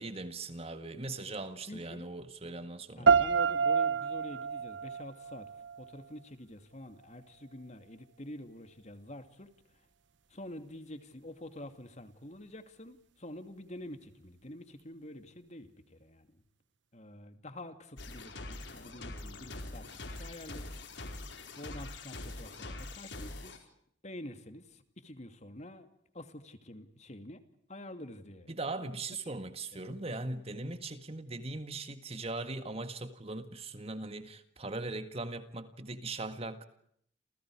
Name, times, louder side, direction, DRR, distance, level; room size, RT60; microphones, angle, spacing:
voice 1, 0.0-3.2 28.5-36.6, right 2 dB, 30° right, 1.8 m, -40 dB
voice 2, 1.7-2.1 3.0-5.5 5.8-9.5 10.3-16.4 16.9-20.7 21.6-23.7 24.0-25.9 26.1-27.4 27.7-28.5 29.7-29.9, left 1 dB, 35° left, 2.7 m, -47 dB
sound 1, 3.1-6.0, right 6 dB, 70° right, 1.0 m, -28 dB
sound 2, 18.0-23.6, left 2 dB, 70° left, 4.8 m, -43 dB
29.5 x 28.5 x 4.9 m
head